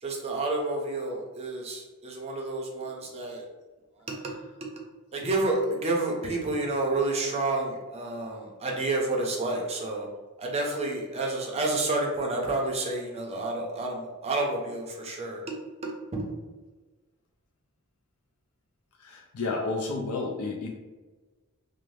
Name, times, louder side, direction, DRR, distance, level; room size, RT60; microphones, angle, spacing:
voice 1, 0.0-3.5 4.1-4.3 5.1-10.1 10.4-15.5 15.8-16.3, right 2 dB, 30° right, 0 dB, 0.5 m, -30 dB
voice 2, 19.0-20.7, left 3 dB, 70° left, 0 dB, 0.4 m, -31 dB
2.6 x 2.0 x 3.1 m, 1.2 s
head